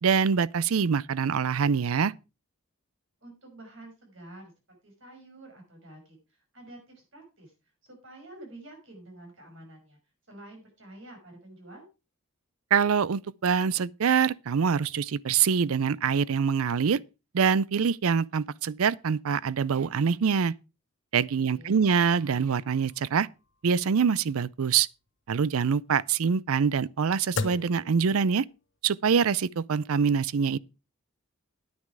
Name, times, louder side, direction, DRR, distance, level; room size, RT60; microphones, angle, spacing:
voice 1, 0.0-2.1 12.7-17.0 17.3-20.5 21.1-23.3 23.6-24.9 25.3-28.5 28.8-30.6, right 6 dB, 80° right, 0.5 m, -25 dB
voice 2, 3.2-7.5 7.8-10.0 10.3-11.9 21.5-21.9, right 1 dB, 60° right, 5.7 m, -49 dB
sound 1, 22.1-28.8, left 3 dB, 55° left, 1.0 m, -40 dB
9.8 x 9.5 x 4.7 m
head